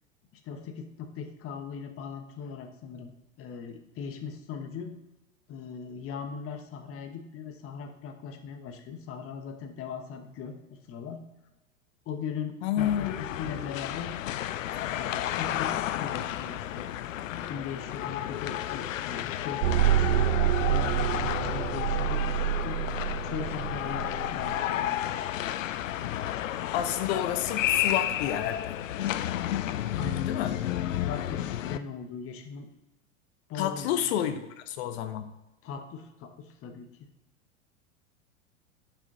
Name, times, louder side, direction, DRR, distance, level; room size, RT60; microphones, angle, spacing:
voice 1, 0.4-3.1 3.4-4.9 5.5-11.2 12.1-14.2 14.8-16.9 17.3-20.3 20.7-22.8 23.2-25.4 29.9-30.6 31.0-32.7 33.5-34.5 35.6-36.9, left 6 dB, 35° left, 7 dB, 1.1 m, -39 dB
voice 2, 12.6-13.1 26.7-28.8 30.3-30.5 33.5-34.4 34.7-35.3, left 10 dB, 55° left, 10 dB, 0.9 m, -29 dB
sound 1, 12.8-31.8, left 12 dB, 75° left, 0.5 m, -32 dB
sound 2, 19.6-24.6, right 13 dB, 60° right, 0.5 m, -27 dB
8.9 x 5.0 x 3.9 m, 1.0 s
hypercardioid pair, 90°, 39 cm